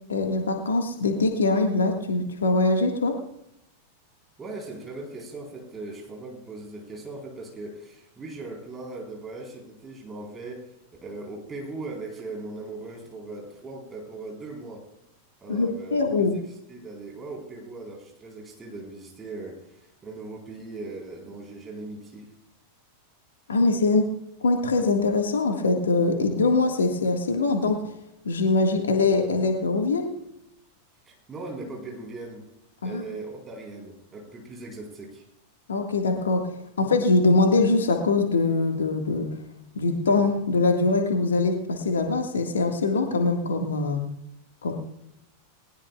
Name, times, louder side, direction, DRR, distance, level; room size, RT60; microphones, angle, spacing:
voice 1, 0.1-3.2 15.5-16.3 23.5-24.1 24.4-27.8 28.2-30.1 32.8-33.0 35.7-36.5 36.8-39.3 39.7-44.0 44.6-44.7, left 3 dB, 70° left, 4 dB, 1.7 m, -23 dB
voice 2, 4.4-10.7 11.0-14.9 15.4-16.0 16.3-16.4 16.7-22.3 31.1-32.4 32.8-35.2, right 2 dB, 20° right, -1 dB, 4.1 m, -39 dB
20.0 x 19.5 x 2.4 m, 0.83 s
figure-of-eight pair, 90°, 0 cm